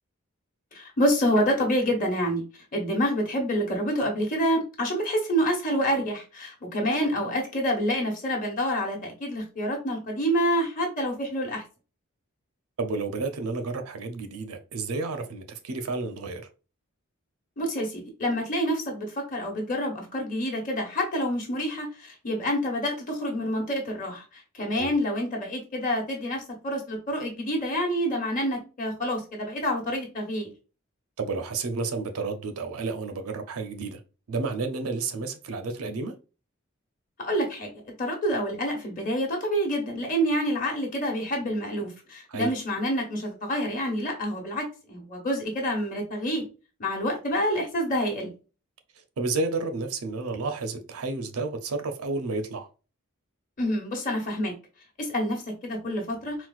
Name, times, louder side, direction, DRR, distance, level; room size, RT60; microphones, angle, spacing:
voice 1, 0.7-2.4 2.7-11.6 17.6-30.5 37.2-37.7 38.0-46.4 46.8-48.3 53.6-54.5 55.0-56.4, equal, 40° left, 1.0 m, -27 dB
voice 2, 12.8-16.4 24.7-24.9 31.2-34.0 34.3-36.1 42.3-42.5 49.2-52.7, right 3 dB, 85° right, 0.6 m, -31 dB
4.2 x 2.1 x 2.4 m
head